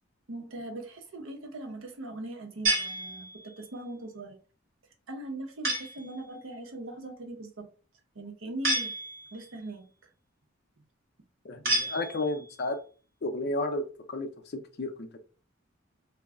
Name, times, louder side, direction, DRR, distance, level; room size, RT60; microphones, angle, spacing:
voice 1, 0.3-4.4 5.1-7.7 8.1-8.9 9.3-9.9, right 2 dB, 75° right, 0.7 m, -40 dB
sound 1, 2.7-3.6 5.6-6.1 8.6-9.5 11.7-12.5, right 2 dB, 45° right, 1.0 m, -30 dB
voice 2, 11.4-12.8 13.2-14.3 14.8-15.2, left 2 dB, 55° left, 0.5 m, -32 dB
2.3 x 2.0 x 3.5 m
head